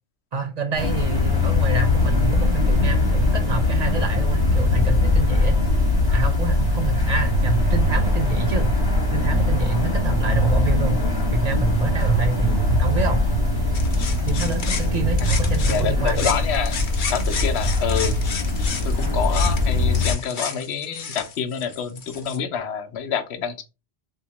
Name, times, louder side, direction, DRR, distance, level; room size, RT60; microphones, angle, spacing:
voice 1, 0.3-5.6 6.1-8.7 9.1-11.0 11.3-13.2 14.3-16.4, right 4 dB, 50° right, 0.6 m, -27 dB
sound 1, 0.8-20.1, left 2 dB, 20° left, 1.3 m, -21 dB
sound 2, 13.7-22.4, left 5 dB, 55° left, 0.8 m, -32 dB
voice 2, 15.7-16.8 17.1-18.2 18.8-23.6, left 7 dB, 85° left, 0.9 m, -27 dB
3.6 x 2.8 x 2.9 m
omnidirectional pair, 1.1 m